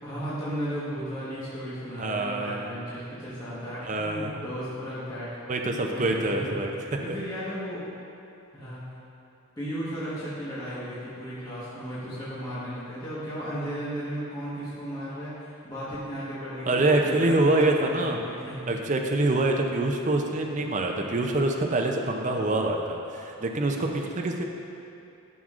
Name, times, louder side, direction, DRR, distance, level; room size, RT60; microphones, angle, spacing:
voice 1, 0.0-5.3 5.9-7.9 8.5-9.0 9.6-18.6, equal, 15° left, -11 dB, 1.2 m, -35 dB
voice 2, 2.0-2.7 3.8-4.4 5.5-7.0 16.7-18.2 18.7-24.4, right 2 dB, 35° right, 2 dB, 0.4 m, -25 dB
11.0 x 6.2 x 2.5 m, 2.7 s
head